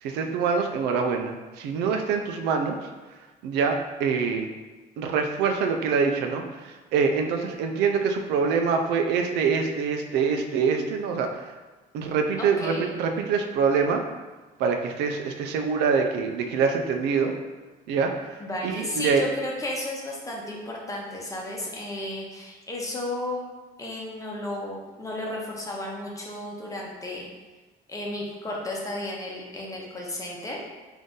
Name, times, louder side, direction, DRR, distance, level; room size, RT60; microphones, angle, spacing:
voice 1, 0.0-2.8 3.4-4.5 5.0-11.5 11.9-14.0 14.6-17.3 17.9-18.3 18.6-19.2, right 5 dB, 90° right, 4 dB, 0.5 m, -25 dB
voice 2, 12.4-12.9 18.4-27.3 27.9-30.6, left 1 dB, 20° left, -2 dB, 0.9 m, -33 dB
3.8 x 2.6 x 3.7 m, 1.2 s
cardioid pair, 110°, 17 cm